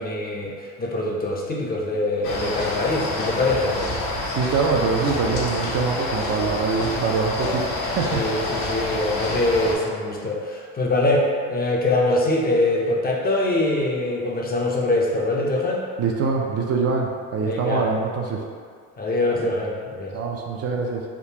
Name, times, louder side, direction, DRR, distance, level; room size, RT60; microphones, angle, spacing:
voice 1, 0.0-3.8 8.1-15.8 17.4-17.9 19.0-20.2, left 2 dB, 25° left, -2 dB, 0.6 m, -23 dB
sound 1, 2.2-9.8, left 2 dB, 60° left, 0.9 m, -27 dB
voice 2, 4.2-8.2 16.0-18.4 19.4-19.5 20.1-21.0, right 4 dB, 45° right, 0 dB, 0.5 m, -24 dB
3.6 x 2.4 x 2.8 m, 2.1 s
supercardioid pair, 85°, 35 cm